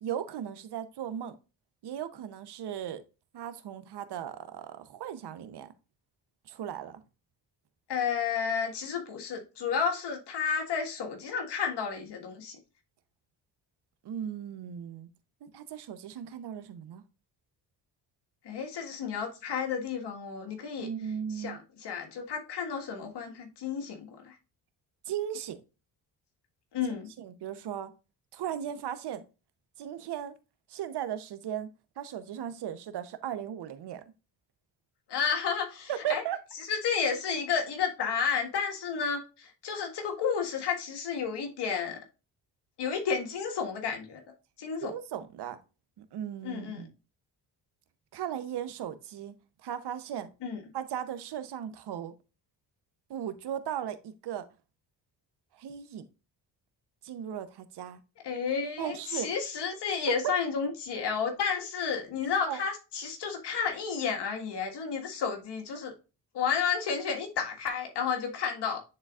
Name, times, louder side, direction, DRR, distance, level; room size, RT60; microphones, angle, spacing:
voice 1, 0.0-1.4 1.8-3.0 3.3-5.7 6.5-7.0 14.0-15.1 15.4-17.0 20.8-21.6 25.1-25.6 27.2-27.9 28.3-29.2 29.8-30.4 30.7-31.7 32.0-34.0 35.9-36.4 44.8-45.6 46.0-46.9 48.1-49.3 49.6-50.3 50.7-52.1 53.1-54.5 55.6-56.0 57.0-58.0 58.8-59.3 60.2-60.3 62.5-62.6, right 10 dB, 70° right, 0.9 m, -37 dB
voice 2, 7.9-12.6 18.4-20.9 21.3-24.4 26.7-27.1 35.1-36.2 36.7-42.0 42.8-44.2 44.6-44.9 46.4-46.9 50.4-50.6 58.2-65.9 66.3-68.8, left 6 dB, 70° left, 1.7 m, -31 dB
9.7 x 4.0 x 2.4 m
cardioid pair, 85°, 42 cm